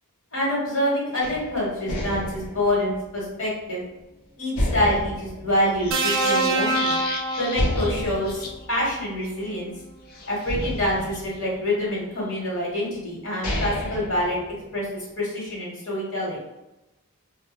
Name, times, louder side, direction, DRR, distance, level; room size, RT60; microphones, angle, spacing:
voice 1, 0.3-3.8 4.4-6.9 7.4-9.7 10.3-14.4 14.7-16.4, left 1 dB, 60° left, -5 dB, 1.1 m, -26 dB
sound 1, 1.2-4.0 4.5-6.5 6.8-6.9 7.5-9.9 10.5-12.0 12.8-12.9 13.2-15.0, equal, 90° left, 0.7 m, -31 dB
sound 2, 5.7-8.8 9.1-9.3 10.1-11.5 12.0-12.4, left 3 dB, 45° left, 0.3 m, -36 dB
sound 3, 5.9-8.2 9.5-9.7, right 2 dB, 60° right, 0.3 m, -25 dB
2.2 x 2.1 x 3.0 m, 0.95 s
head